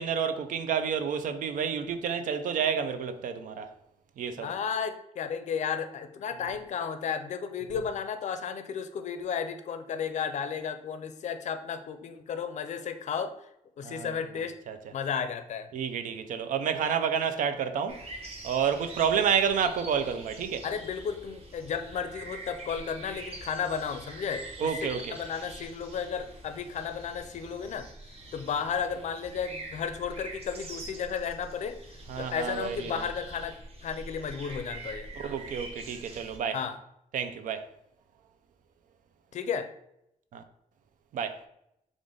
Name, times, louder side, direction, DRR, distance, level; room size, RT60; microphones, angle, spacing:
voice 1, 0.0-3.7 4.2-4.5 13.8-14.1 14.7-14.8 15.7-18.0 18.4-20.7 24.6-25.2 32.1-33.1 35.2-36.6 37.1-37.7 40.3-40.4 41.1-41.4, right 7 dB, 85° right, 0.5 m, -29 dB
voice 2, 4.4-13.3 13.8-14.6 14.9-15.7 20.6-27.9 28.3-31.8 32.2-33.5 33.8-35.1 36.5-36.8 39.3-39.7, left 7 dB, 65° left, 0.5 m, -33 dB
sound 1, 17.9-36.4, right 2 dB, 50° right, 1.0 m, -45 dB
4.9 x 2.5 x 3.8 m
cardioid pair, 120°, 13 cm